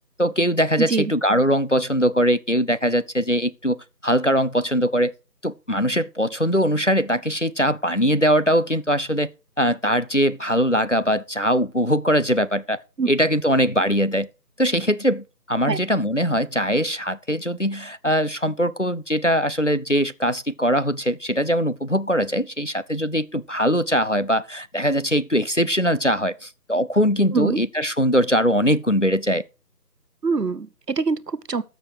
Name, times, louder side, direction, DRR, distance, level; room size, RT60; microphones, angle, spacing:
voice 1, 0.2-3.8 4.0-5.1 5.4-9.3 9.6-12.8 13.1-14.3 14.6-29.4, equal, 50° left, 0.6 m, -21 dB
voice 2, 0.8-1.1 13.0-13.1 15.7-15.8 27.3-27.6 30.2-31.6, right 4 dB, 75° right, 1.0 m, -24 dB
13.5 x 6.9 x 4.8 m
figure-of-eight pair, 175°, 49 cm